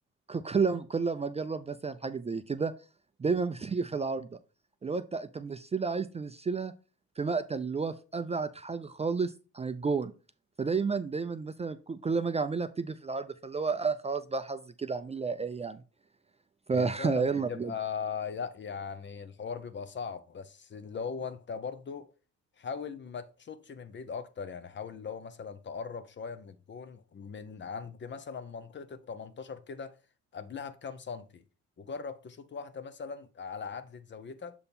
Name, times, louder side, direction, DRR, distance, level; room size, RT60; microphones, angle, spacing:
voice 1, 0.3-2.7 3.2-4.3 4.8-6.7 7.2-10.1 10.6-15.8 16.7-17.7, right 4 dB, 20° right, 0.4 m, -31 dB
voice 2, 16.7-22.1 22.6-30.0 30.3-31.4 31.8-34.5, left 6 dB, 40° left, 0.7 m, -39 dB
6.9 x 3.5 x 4.2 m
cardioid pair, 90°, 30 cm